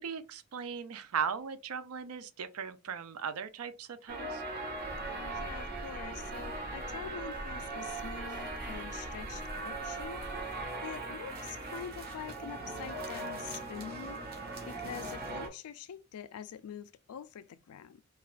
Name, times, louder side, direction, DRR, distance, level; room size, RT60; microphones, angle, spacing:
voice 1, 0.0-4.4, right 7 dB, 75° right, 0.5 m, -38 dB
sound 1, 4.1-15.5, right 3 dB, 45° right, 1.1 m, -40 dB
sound 2, 4.7-10.7, equal, 20° right, 0.5 m, -46 dB
voice 2, 5.0-10.2 10.8-14.2 14.7-18.0, left 8 dB, 80° left, 0.4 m, -45 dB
5.4 x 2.3 x 2.4 m
head